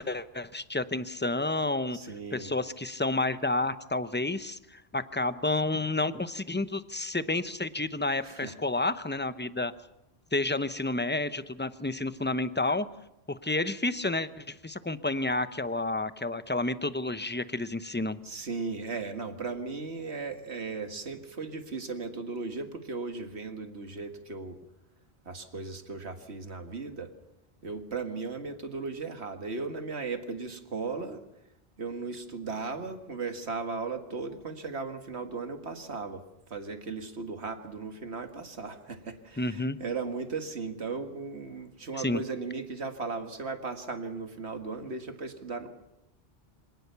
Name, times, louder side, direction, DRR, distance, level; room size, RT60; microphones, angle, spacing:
voice 1, 0.0-2.0 2.3-9.7 10.3-12.9 13.3-18.2 39.4-39.8 41.9-42.2, left 2 dB, 10° left, 12 dB, 0.7 m, -30 dB
voice 2, 1.9-2.5 8.2-8.6 18.2-24.6 25.3-27.1 27.6-31.2 31.8-36.2 36.5-45.7, right 4 dB, 85° right, 7 dB, 2.1 m, -36 dB
25.5 x 18.5 x 6.9 m, 0.87 s
omnidirectional pair, 1.1 m